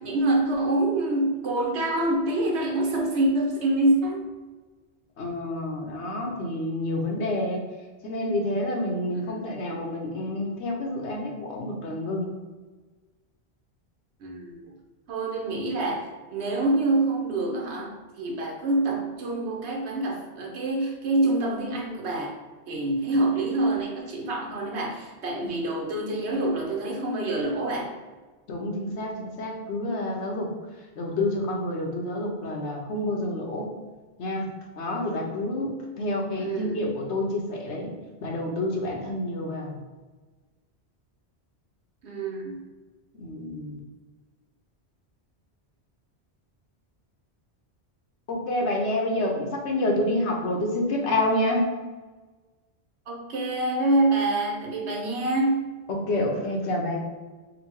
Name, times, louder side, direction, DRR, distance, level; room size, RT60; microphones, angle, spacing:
voice 1, 0.0-4.3 9.1-9.4 14.2-14.7 15.1-22.3 22.7-27.9 36.4-36.8 42.0-42.6 53.1-55.7, right 2 dB, 80° right, -1 dB, 1.1 m, -26 dB
voice 2, 5.2-7.6 8.0-12.3 25.4-25.5 28.5-30.5 31.0-33.7 34.2-34.4 34.8-35.7 36.0-37.9 38.2-39.8 43.2-43.8 48.3-51.7 55.9-57.0, left 1 dB, 85° left, 0 dB, 1.1 m, -28 dB
4.0 x 2.3 x 4.5 m, 1.3 s
omnidirectional pair, 1.1 m